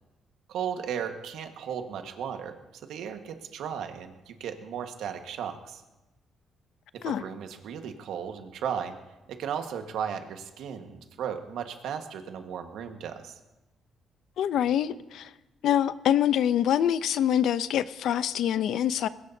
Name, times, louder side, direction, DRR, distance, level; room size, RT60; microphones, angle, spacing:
voice 1, 0.5-2.5 2.9-5.8 6.9-8.9 9.3-13.3, right 8 dB, 80° right, 5 dB, 1.5 m, -35 dB
voice 2, 14.4-15.3 15.6-19.1, left 10 dB, 75° left, 15 dB, 0.6 m, -25 dB
21.0 x 17.5 x 2.8 m, 1.0 s
cardioid pair, 90°, 0 cm